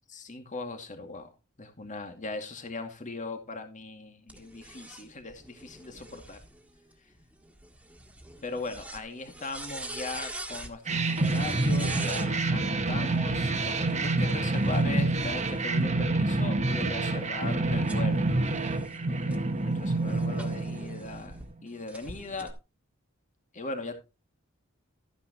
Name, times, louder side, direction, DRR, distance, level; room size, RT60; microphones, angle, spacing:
voice 1, 0.1-1.3 1.6-6.4 8.4-18.3 19.1-22.5 23.5-23.9, left 3 dB, 35° left, 6 dB, 2.3 m, -39 dB
sound 1, 4.3-12.3 13.4-15.8 16.4-21.4 21.9-22.5, right 2 dB, 5° right, 1.8 m, -45 dB
sound 2, 10.9-21.4, right 2 dB, 35° right, 1.3 m, -27 dB
13.5 x 9.8 x 3.0 m, 0.28 s
head